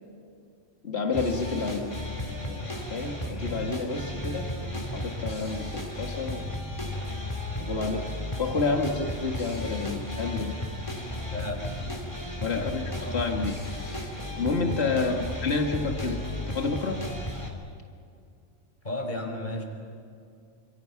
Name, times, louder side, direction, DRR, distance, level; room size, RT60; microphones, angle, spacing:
voice 1, 0.8-2.0 2.4-6.4 7.6-8.1 8.4-10.6 12.4-13.6 13.8-14.1 14.4-15.1 15.4-17.0, left 4 dB, 60° left, 2 dB, 2.2 m, -30 dB
sound 1, 1.1-17.5, left 1 dB, 25° left, 3.8 m, -34 dB
voice 2, 11.3-11.7 12.5-13.2 14.9-15.3 18.8-19.6, left 1 dB, 40° left, 2 dB, 4.9 m, -34 dB
29.5 x 28.0 x 6.0 m, 2.4 s
omnidirectional pair, 1.2 m